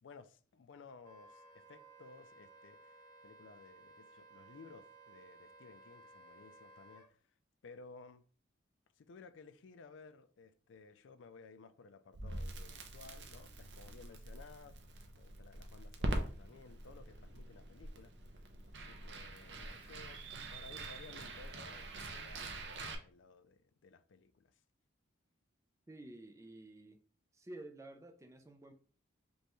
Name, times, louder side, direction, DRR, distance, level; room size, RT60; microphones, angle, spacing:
voice 1, 0.0-7.2 7.6-8.2 9.0-14.8 15.1-18.1 18.7-24.5, left 4 dB, 75° left, 0.4 m, -57 dB
Wind instrument woodwind instrument, 1.0-7.1, right 2 dB, 15° left, 0.7 m, -59 dB
Crackle, 12.1-23.0, right 1 dB, 60° right, 0.6 m, -44 dB
voice 2, 25.9-27.0 27.3-28.7, right 1 dB, 15° right, 0.4 m, -51 dB
5.2 x 2.3 x 3.0 m
head